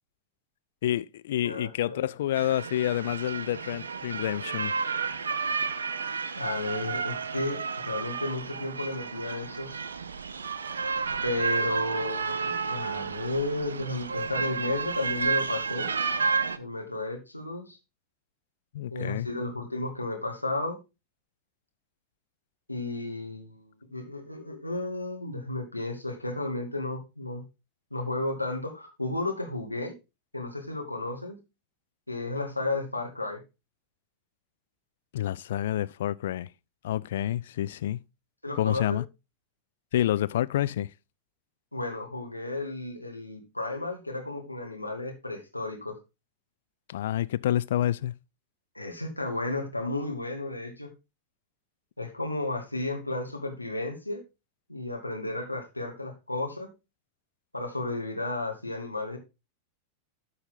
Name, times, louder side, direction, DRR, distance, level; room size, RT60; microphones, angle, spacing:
voice 1, 0.8-4.7 18.7-19.3 35.1-36.5 36.8-38.0 38.6-39.0 39.9-40.9 46.9-48.1, left 12 dB, 60° left, 0.3 m, -28 dB
voice 2, 1.4-2.1 6.4-9.8 11.2-15.9 16.6-17.8 18.9-20.8 22.7-27.4 27.9-29.9 30.3-31.4 32.1-33.4 38.4-39.0 41.7-46.0 48.8-50.9 52.0-54.2 54.7-56.7 57.5-59.2, left 2 dB, 85° left, 1.9 m, -33 dB
sound 1, 2.3-16.6, right 5 dB, 70° right, 0.6 m, -31 dB
12.5 x 4.2 x 3.8 m
figure-of-eight pair, 90°, 0 cm